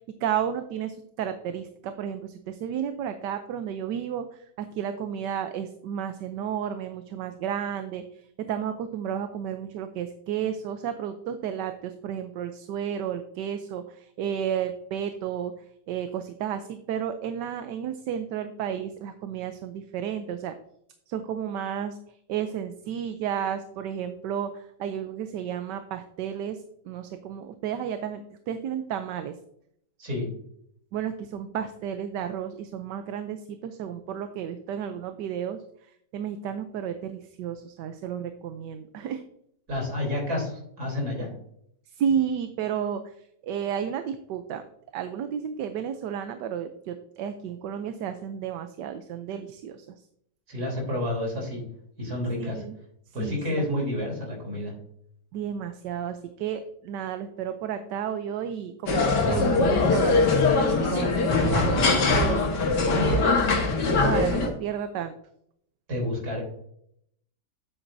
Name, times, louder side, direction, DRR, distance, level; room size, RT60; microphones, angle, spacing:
voice 1, 0.2-20.5 21.1-22.0 22.3-29.3 30.9-39.2 41.9-44.7 44.9-50.0 52.4-52.7 53.2-53.6 55.3-62.5 62.9-63.3 64.0-65.1, right 8 dB, 85° right, 9 dB, 1.3 m, -32 dB
voice 2, 39.7-41.3 50.5-51.6 52.0-52.6 53.1-54.7 65.9-66.4, left 1 dB, 65° right, -1 dB, 4.1 m, -29 dB
sound 1, 58.9-64.5, left 3 dB, 80° left, 2.1 m, -22 dB
9.9 x 8.0 x 2.6 m, 0.70 s
omnidirectional pair, 1.8 m